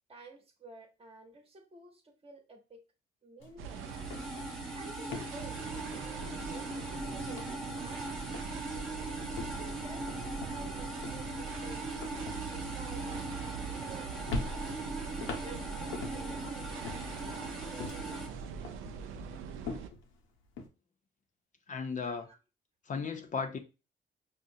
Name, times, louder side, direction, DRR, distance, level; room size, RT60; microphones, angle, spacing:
voice 1, 0.1-2.8 3.2-3.8 4.7-8.9 9.4-14.7 15.4-19.0 22.0-22.4 23.2-23.3, right 3 dB, 30° right, 0.9 m, -52 dB
sound 1, 3.4-3.6 3.9-6.9 7.2-8.1 8.3-8.7 9.2-13.9 14.3-16.4 16.8-18.3 18.6-20.7, left 3 dB, 90° left, 0.7 m, -43 dB
sound 2, 3.6-18.3, right 1 dB, 5° left, 0.8 m, -41 dB
sound 3, 3.6-19.9, right 6 dB, 85° right, 0.4 m, -42 dB
voice 2, 21.7-22.3 22.9-23.6, left 5 dB, 40° left, 0.5 m, -35 dB
4.9 x 2.0 x 2.7 m
cardioid pair, 90°, 20 cm